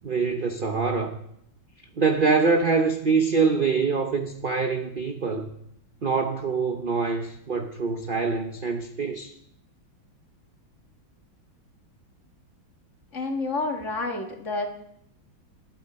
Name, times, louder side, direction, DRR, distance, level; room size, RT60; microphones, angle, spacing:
voice 1, 0.0-1.1 2.0-5.5 6.0-9.3, right 4 dB, 55° right, 0.5 m, -24 dB
voice 2, 13.1-14.7, left 3 dB, 40° left, 1.9 m, -29 dB
21.0 x 8.7 x 4.3 m
omnidirectional pair, 2.1 m